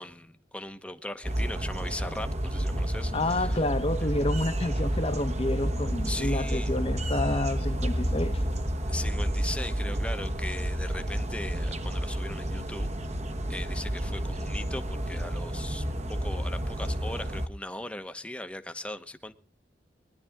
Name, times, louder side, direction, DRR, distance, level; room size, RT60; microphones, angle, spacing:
voice 1, 0.0-3.6 4.0-4.1 6.1-6.7 8.9-12.9 13.5-19.3, left 1 dB, 5° left, 1.1 m, -39 dB
sound 1, 1.2-17.5, right 1 dB, 35° right, 1.3 m, -30 dB
voice 2, 3.1-8.4, left 1 dB, 30° left, 1.2 m, -29 dB
22.0 x 11.5 x 3.6 m
head